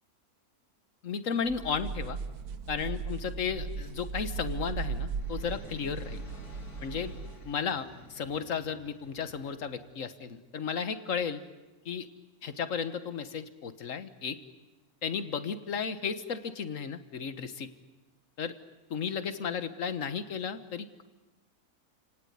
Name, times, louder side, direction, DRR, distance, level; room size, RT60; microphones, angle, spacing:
voice 1, 1.0-2.2 2.7-6.2 6.8-7.1 7.4-11.4 11.8-12.1 12.4-14.4 15.0-17.7 18.4-18.5 18.9-21.0, left 6 dB, 60° left, 11 dB, 1.6 m, -34 dB
sound 1, 1.5-7.5, right 5 dB, 80° right, 1.6 m, -37 dB
sound 2, 4.4-10.3, left 1 dB, 75° left, 3.5 m, -52 dB
29.0 x 18.0 x 9.6 m, 1.1 s
omnidirectional pair, 1.6 m